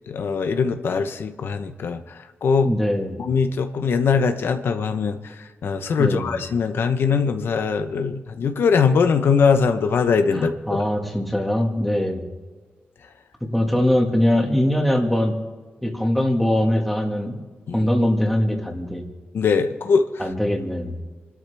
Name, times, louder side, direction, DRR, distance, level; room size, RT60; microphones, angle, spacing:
voice 1, 0.1-2.0 2.4-2.7 3.2-5.2 5.6-10.8 17.7-17.8 19.3-20.0, left 5 dB, 90° left, 7 dB, 0.9 m, -21 dB
voice 2, 2.6-3.2 6.0-6.3 10.3-12.2 13.5-15.3 15.8-17.4 17.7-19.0 20.2-21.0, left 1 dB, 5° left, 2 dB, 1.9 m, -22 dB
28.0 x 12.5 x 3.5 m, 1.4 s
wide cardioid pair, 180°, 4 cm